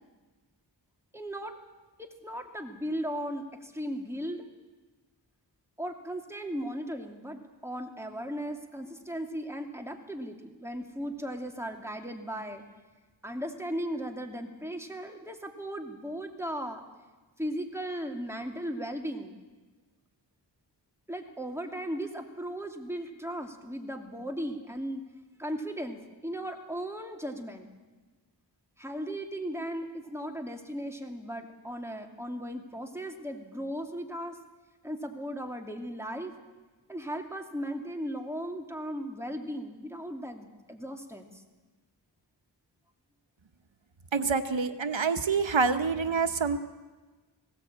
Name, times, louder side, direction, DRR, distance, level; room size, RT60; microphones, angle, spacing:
voice 1, 1.1-1.6 2.0-4.5 5.8-12.6 13.2-16.8 17.4-19.4 21.1-25.0 25.4-27.7 28.8-34.4 34.8-36.3 36.9-41.4, equal, 5° right, 3 dB, 2.7 m, -37 dB
voice 2, 44.1-46.6, right 5 dB, 85° right, 8 dB, 1.1 m, -27 dB
19.5 x 16.5 x 8.8 m, 1.3 s
wide cardioid pair, 50°, 45 cm